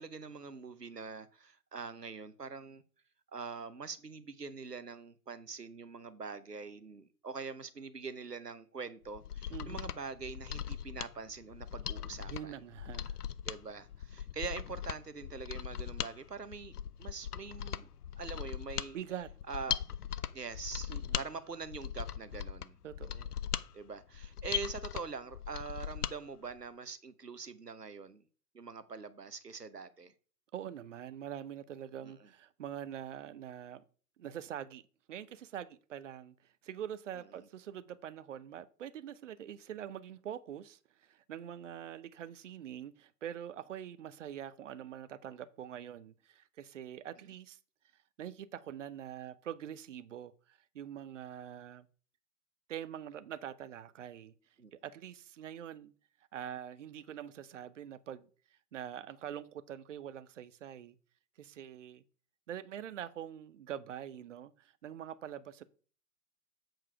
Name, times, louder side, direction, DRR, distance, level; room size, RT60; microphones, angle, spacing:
voice 1, 0.0-2.8 3.3-12.6 13.4-17.9 18.2-19.0 19.5-19.8 20.3-22.8 23.7-28.2 28.5-30.1 32.0-32.1 54.6-54.7, right 5 dB, 90° right, 0.9 m, -44 dB
Mechanisms, 9.1-26.2 26.5-26.6, left 9 dB, 75° left, 0.6 m, -40 dB
voice 2, 9.5-9.9 12.3-13.2 18.9-19.3 20.9-21.2 22.8-23.3 30.5-33.8 34.2-34.8 35.1-36.3 36.6-47.6 48.2-51.9 52.7-54.3 54.7-55.9 56.3-58.3 58.7-60.9 61.4-62.0 62.5-65.6, right 10 dB, 50° right, 0.7 m, -44 dB
7.8 x 4.5 x 4.6 m
figure-of-eight pair, 110°, 46 cm